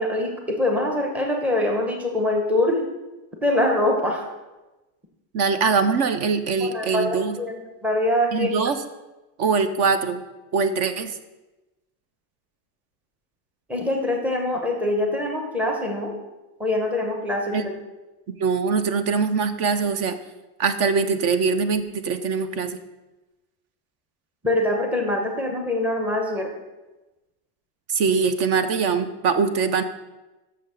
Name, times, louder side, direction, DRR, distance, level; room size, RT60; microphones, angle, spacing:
voice 1, 0.0-2.8 3.4-4.3 6.6-8.5 13.7-16.1 16.6-17.7 24.4-26.5, left 1 dB, 5° right, 1 dB, 0.7 m, -24 dB
voice 2, 5.3-7.4 8.3-8.8 9.4-10.2 10.5-11.1 17.5-17.6 18.4-20.2 20.6-22.8 27.9-29.8, right 5 dB, 35° right, 11 dB, 0.4 m, -22 dB
6.5 x 5.7 x 6.6 m, 1.1 s
cardioid pair, 160°, 49 cm